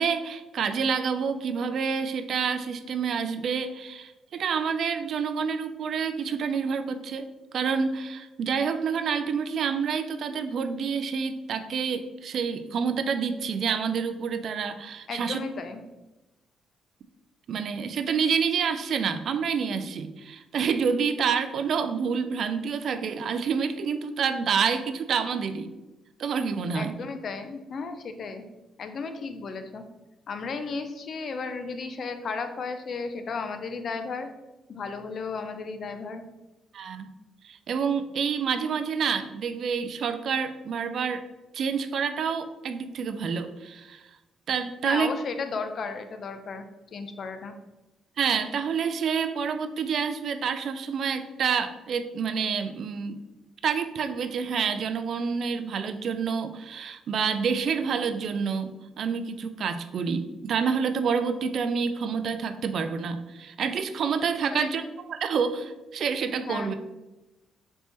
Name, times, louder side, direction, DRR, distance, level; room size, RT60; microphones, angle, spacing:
voice 1, 0.0-15.4 17.5-25.7 26.2-26.9 36.7-37.1 37.4-41.2 41.5-44.1 44.5-45.1 48.2-53.2 53.6-64.8 65.1-66.8, right 6 dB, 65° right, 9 dB, 0.3 m, -28 dB
voice 2, 15.1-15.8 26.7-28.4 28.8-29.8 30.3-34.3 34.7-36.2 44.8-46.6 46.9-47.5 64.5-64.7 66.5-66.8, left 4 dB, 55° left, 8 dB, 0.4 m, -34 dB
4.2 x 3.5 x 2.9 m, 1.1 s
cardioid pair, 90°, 0 cm